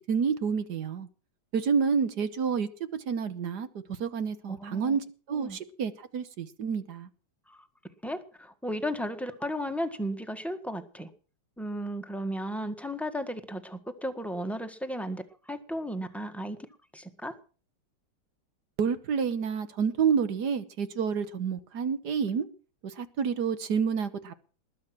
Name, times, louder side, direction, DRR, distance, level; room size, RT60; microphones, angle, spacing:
voice 1, 0.1-1.1 1.5-3.7 4.0-7.1 18.8-22.5 22.8-24.3, right 6 dB, 60° right, 1.5 m, -29 dB
voice 2, 4.6-5.0 5.3-5.6 7.5-7.7 8.0-11.1 11.6-16.6 16.9-17.3, equal, ahead, 1.3 m, -34 dB
20.5 x 9.3 x 6.1 m
omnidirectional pair, 2.2 m